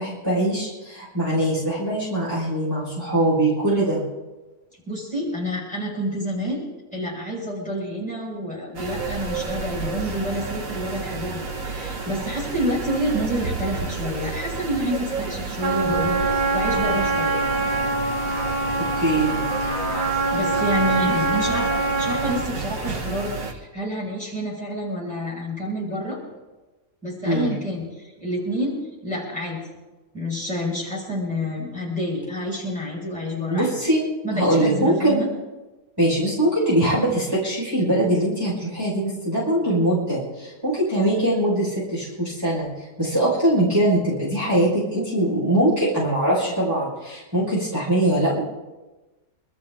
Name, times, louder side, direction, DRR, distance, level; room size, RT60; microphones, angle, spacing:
voice 1, 0.0-4.0 19.0-19.4 27.2-27.5 33.5-34.0 34.3-35.2 36.0-48.4, right 1 dB, 15° right, -8 dB, 5.5 m, -22 dB
voice 2, 4.9-6.6 6.9-16.2 16.5-17.5 20.3-26.2 27.0-28.8 29.0-29.6 30.1-33.7 34.2-35.3, equal, 5° left, -5 dB, 6.3 m, -28 dB
sound 1, 8.7-23.5, right 4 dB, 80° right, 2.0 m, -31 dB
Trumpet, 15.6-22.5, right 3 dB, 35° right, 3.3 m, -24 dB
26.0 x 13.5 x 3.8 m, 1.1 s
omnidirectional pair, 1.4 m